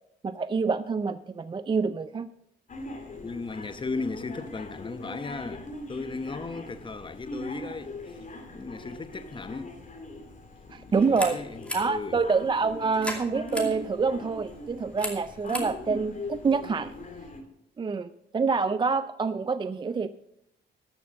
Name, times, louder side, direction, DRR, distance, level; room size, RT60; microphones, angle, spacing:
voice 1, 0.2-2.3 10.7-11.4 11.7-16.9 17.8-20.1, right 4 dB, 25° right, 0.4 m, -27 dB
sound 1, 2.7-17.4, left 2 dB, 40° left, 2.5 m, -41 dB
voice 2, 3.2-8.2 8.5-9.7 10.7-12.2, left 3 dB, 25° left, 1.0 m, -36 dB
sound 2, 10.9-17.2, left 1 dB, 5° left, 2.5 m, -40 dB
13.0 x 6.8 x 6.4 m
cardioid pair, 90°, 20 cm